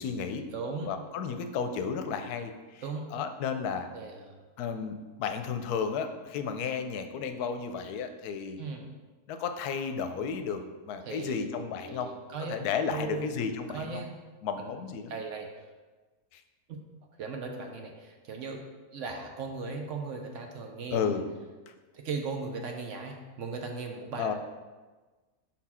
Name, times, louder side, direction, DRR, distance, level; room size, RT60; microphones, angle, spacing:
voice 1, 0.0-0.5 0.8-2.8 3.1-3.9 4.6-8.6 9.3-12.1 12.5-14.0 14.4-15.1 16.3-16.4 20.9-21.3 24.2-24.3, left 6 dB, 85° left, 7 dB, 1.1 m, -33 dB
voice 2, 0.5-0.9 2.8-3.1 3.9-4.5 8.6-8.9 11.0-11.4 11.8-12.6 12.9-13.3 13.7-14.2 14.6-14.8 15.1-15.5 16.7-16.8 17.2-18.6 18.9-21.0 21.9-24.3, right 4 dB, 65° right, 3 dB, 0.8 m, -37 dB
5.9 x 4.3 x 4.2 m, 1.3 s
omnidirectional pair, 1.6 m